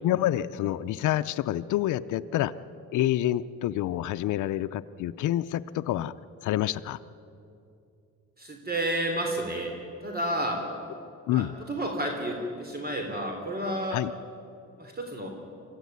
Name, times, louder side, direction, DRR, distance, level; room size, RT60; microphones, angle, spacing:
voice 1, 0.0-2.5 2.9-6.1 6.4-7.0 11.3-11.5 13.9-14.1, left 13 dB, 80° left, 10 dB, 0.6 m, -27 dB
voice 2, 8.4-9.7 10.0-10.6 11.3-14.0 14.8-15.3, right 1 dB, 30° right, 3 dB, 3.3 m, -31 dB
23.5 x 14.5 x 9.4 m, 2.6 s
cardioid pair, 90°, 30 cm